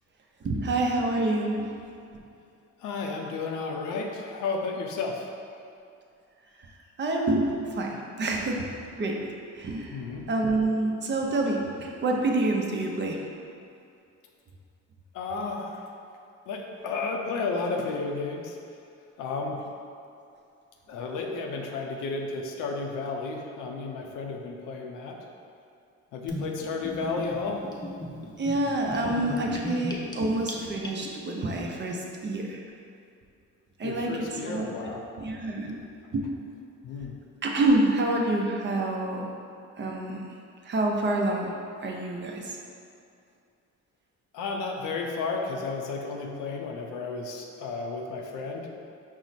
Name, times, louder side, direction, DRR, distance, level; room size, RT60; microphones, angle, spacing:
voice 1, 0.4-1.7 7.0-9.2 9.5-13.3 28.4-32.6 33.8-34.8 35.2-35.8 36.1-36.2 37.4-39.2 39.8-40.2 40.6-41.5 41.8-42.5, right 2 dB, 35° right, 0 dB, 0.6 m, -27 dB
voice 2, 2.8-5.3 9.9-10.3 15.1-15.8 16.5-18.6 19.2-19.6 20.9-25.2 26.1-27.6 33.8-35.0 36.8-37.2 44.3-48.7, left 4 dB, 90° left, 2 dB, 0.5 m, -32 dB
Gurgling / Bathtub (filling or washing), 26.3-31.3, left 1 dB, 15° left, 0.5 m, -37 dB
4.6 x 2.1 x 4.0 m, 2.5 s
cardioid pair, 90°, 30 cm